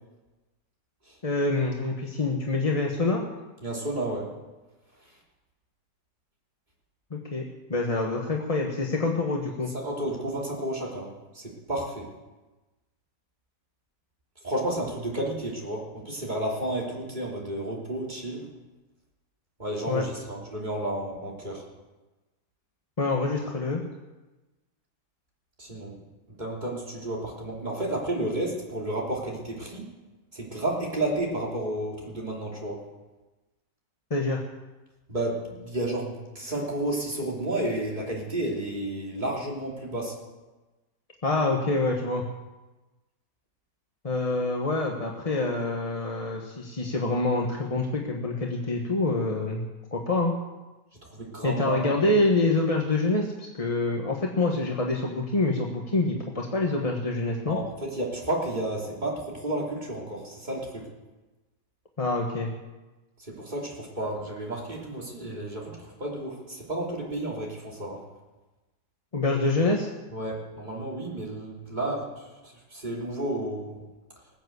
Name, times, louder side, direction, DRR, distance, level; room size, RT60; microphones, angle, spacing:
voice 1, 1.2-3.2 7.1-7.4 7.7-9.7 19.9-20.0 23.0-23.8 34.1-34.4 41.2-42.2 44.0-50.3 51.4-57.6 62.0-62.5 69.1-69.9, left 2 dB, 25° left, 0 dB, 1.1 m, -26 dB
voice 2, 3.6-4.3 9.7-12.1 14.4-18.4 19.6-21.6 25.6-25.9 26.3-29.9 30.3-32.8 35.1-40.1 51.1-52.1 57.5-60.9 63.2-68.0 70.1-73.8, right 1 dB, 25° right, -3 dB, 3.3 m, -32 dB
19.5 x 7.7 x 8.0 m, 1.1 s
omnidirectional pair, 1.9 m